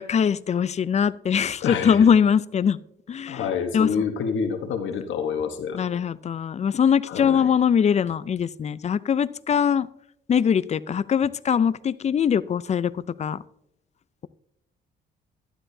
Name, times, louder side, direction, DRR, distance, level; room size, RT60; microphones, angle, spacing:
voice 1, 0.0-2.8 3.1-3.9 5.7-9.9 10.3-13.4, left 7 dB, 35° left, 17 dB, 0.4 m, -22 dB
voice 2, 1.6-2.1 3.3-5.8 7.1-7.5, left 6 dB, 75° left, 6 dB, 1.1 m, -27 dB
12.0 x 10.0 x 2.7 m, 0.76 s
cardioid pair, 90°, 20 cm